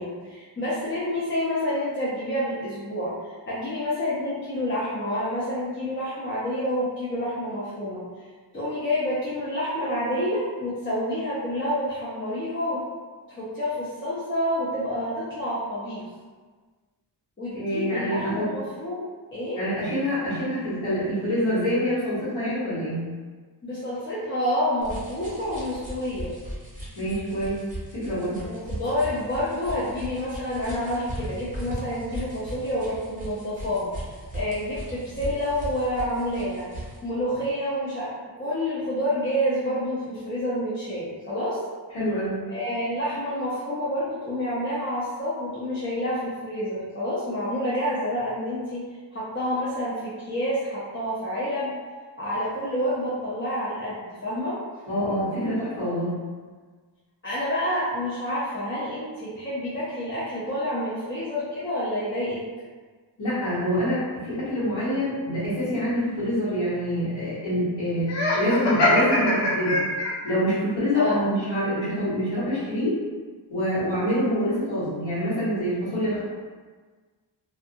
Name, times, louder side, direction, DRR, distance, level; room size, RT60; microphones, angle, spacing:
voice 1, 0.0-3.2 3.5-8.0 8.5-12.8 13.3-16.0 17.4-19.0 19.3-19.6 23.6-26.3 28.4-33.9 34.3-36.7 37.0-38.1 38.4-41.6 42.5-48.8 49.1-51.7 52.2-54.6 57.2-62.4 70.9-71.2, equal, 25° left, -10 dB, 0.6 m, -28 dB
voice 2, 17.5-18.5 19.5-23.0 26.9-27.6 27.9-28.4 41.9-42.4 54.9-56.2 63.2-68.1 68.3-69.8 70.2-73.0 73.5-76.2, equal, 85° left, -15 dB, 1.3 m, -26 dB
sound 1, 24.8-37.0, right 1 dB, 20° right, 0.8 m, -38 dB
Laughter, 68.1-70.4, left 1 dB, 65° left, 0.7 m, -23 dB
2.4 x 2.3 x 2.6 m, 1.5 s
wide cardioid pair, 120°, 45 cm